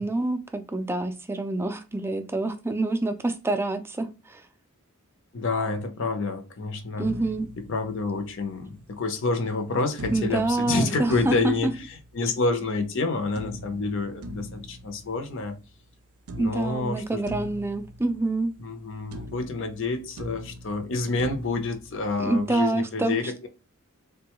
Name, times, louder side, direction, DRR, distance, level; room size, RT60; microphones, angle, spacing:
voice 1, 0.0-4.4 7.0-7.5 10.1-11.7 12.2-12.3 16.4-18.5 22.2-23.5, right 2 dB, 10° right, 0.3 m, -27 dB
voice 2, 5.3-7.1 7.6-15.6 16.4-17.2 18.6-23.5, left 3 dB, 60° left, 0.6 m, -28 dB
sound 1, 7.0-8.6 10.0-12.6 13.4-15.9 16.3-18.8 19.1-22.6, right 1 dB, 85° right, 0.5 m, -41 dB
3.7 x 2.2 x 2.9 m
head